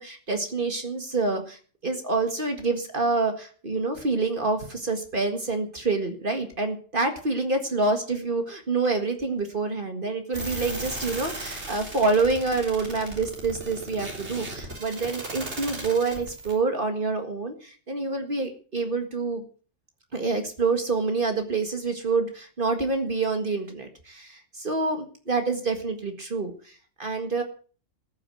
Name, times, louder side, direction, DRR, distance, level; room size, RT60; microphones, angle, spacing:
voice 1, 0.0-19.4 20.1-27.4, right 3 dB, 45° right, 5 dB, 2.0 m, -27 dB
sound 1, 10.3-16.5, right 2 dB, 60° right, 3.9 m, -36 dB
14.0 x 9.0 x 7.5 m, 0.41 s
omnidirectional pair, 1.3 m